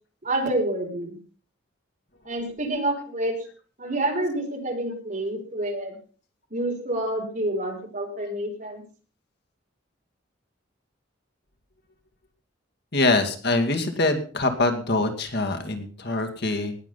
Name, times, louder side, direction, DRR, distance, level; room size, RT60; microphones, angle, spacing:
voice 1, 0.2-1.2 2.2-3.4 3.8-6.0 6.5-8.8, right 1 dB, 45° right, 2 dB, 4.5 m, -28 dB
voice 2, 12.9-16.8, left 2 dB, 60° left, 6 dB, 2.3 m, -24 dB
19.5 x 7.5 x 5.5 m, 0.38 s
head